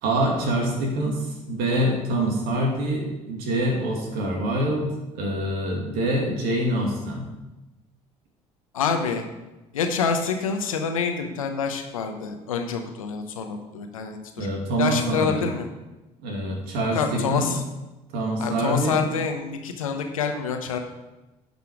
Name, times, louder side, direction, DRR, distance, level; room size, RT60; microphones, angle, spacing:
voice 1, 0.0-4.9 5.1-7.3 14.4-15.5 16.2-17.5 18.1-19.0, right 1 dB, 70° right, 0 dB, 2.5 m, -25 dB
voice 2, 8.7-9.3 9.7-14.5 14.8-15.7 16.9-17.6 18.4-20.8, left 6 dB, 90° left, 5 dB, 0.9 m, -27 dB
10.5 x 5.4 x 4.9 m, 1.0 s
hypercardioid pair, 60°, 17 cm